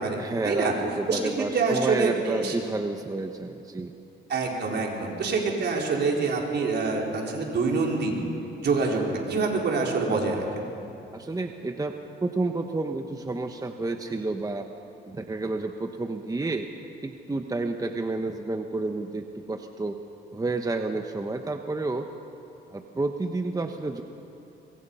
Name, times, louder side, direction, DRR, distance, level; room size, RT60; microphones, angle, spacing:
voice 1, 0.2-3.9 11.1-11.9 12.2-14.7 15.1-16.7 17.0-20.0 20.3-22.1 22.7-24.0, right 3 dB, 20° right, 5 dB, 1.1 m, -30 dB
voice 2, 1.1-2.5 4.3-8.2 8.6-9.0 9.3-10.7, right 4 dB, 60° right, -1 dB, 4.7 m, -26 dB
26.0 x 23.5 x 5.7 m, 2.8 s
cardioid pair, 90°, 20 cm